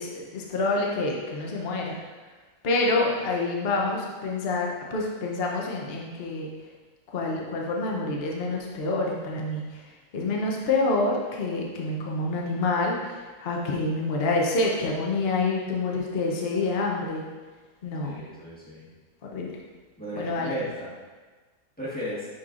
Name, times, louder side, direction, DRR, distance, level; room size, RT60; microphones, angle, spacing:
voice 1, 0.0-2.0 2.6-6.5 7.1-9.8 10.1-17.2 17.8-18.2 19.3-19.5 20.1-20.6, left 2 dB, 50° left, -1 dB, 0.9 m, -27 dB
voice 2, 18.0-18.9 20.0-20.9 21.8-22.3, equal, 5° left, -8 dB, 1.4 m, -34 dB
8.7 x 4.4 x 2.5 m, 1.4 s
omnidirectional pair, 1.5 m